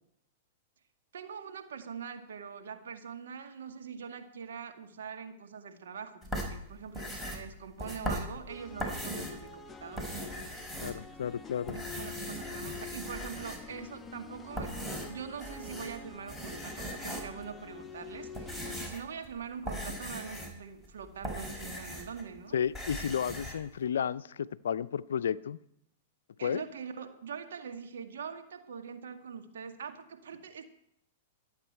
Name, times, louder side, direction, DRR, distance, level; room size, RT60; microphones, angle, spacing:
voice 1, 1.1-10.2 11.7-22.6 26.4-30.6, right 6 dB, 70° right, 5 dB, 2.0 m, -43 dB
sound 1, 6.2-9.5 9.8-11.3 11.6-13.8 14.4-16.0 16.3-17.5 18.0-22.3 22.5-23.6, equal, 10° right, 4.6 m, -39 dB
sound 2, 8.5-18.9, left 5 dB, 15° left, 1.0 m, -47 dB
voice 2, 10.8-11.8 22.5-25.6 26.4-26.6, left 8 dB, 70° left, 16 dB, 0.5 m, -32 dB
24.0 x 8.8 x 4.5 m, 0.72 s
hypercardioid pair, 105°, 0 cm